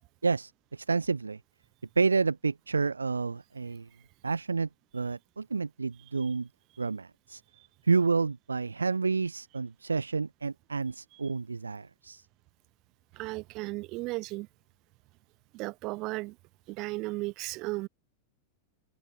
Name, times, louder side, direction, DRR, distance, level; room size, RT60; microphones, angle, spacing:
voice 1, 0.2-1.4 2.0-3.9 4.2-6.5 6.8-7.4 7.8-12.2, right 4 dB, 75° right, 1.2 m, -29 dB
voice 2, 13.1-14.5 15.5-16.4 16.7-17.9, right 22 dB, 40° right, 5.4 m, -35 dB
open air
figure-of-eight pair, 90°, 0 cm